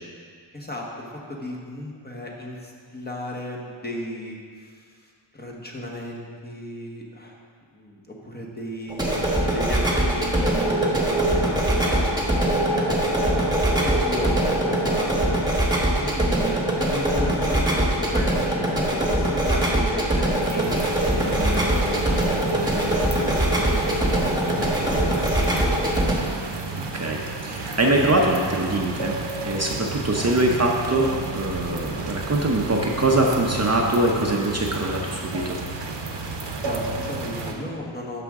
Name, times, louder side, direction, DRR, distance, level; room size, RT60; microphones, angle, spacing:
voice 1, 0.5-5.0 5.3-7.4 7.7-9.1 9.5-13.3 13.7-15.4 16.0-20.7 21.1-25.6 36.6-38.2, equal, 20° left, -2 dB, 1.2 m, -34 dB
sound 1, 8.9-26.1, right 1 dB, 10° right, 1.3 m, -22 dB
sound 2, 20.4-37.5, right 3 dB, 65° right, 0.9 m, -32 dB
voice 2, 26.8-29.2 29.4-35.6, right 2 dB, 35° right, -1 dB, 0.7 m, -23 dB
12.5 x 5.1 x 3.6 m, 2.1 s
wide cardioid pair, 115°, 46 cm